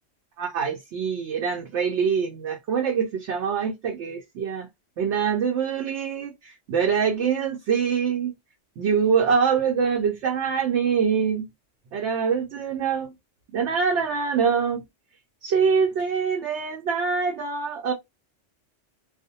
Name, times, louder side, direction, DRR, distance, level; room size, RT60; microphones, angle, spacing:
voice 1, 0.4-4.7 5.0-8.3 8.8-11.5 11.9-13.1 13.5-14.8 15.4-17.9, right 6 dB, 70° right, 0.8 m, -24 dB
2.4 x 2.0 x 2.6 m
omnidirectional pair, 1.3 m